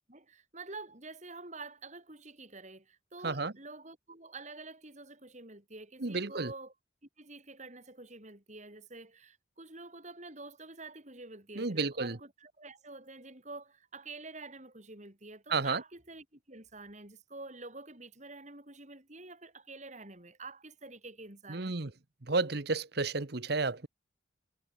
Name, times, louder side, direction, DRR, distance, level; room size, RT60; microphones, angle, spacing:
voice 1, 0.1-6.7 7.2-21.7, right 3 dB, 40° right, 6.0 m, -48 dB
voice 2, 6.0-6.5 11.6-12.2 15.5-15.8 21.5-21.9 22.3-23.9, right 3 dB, 55° right, 1.2 m, -31 dB
head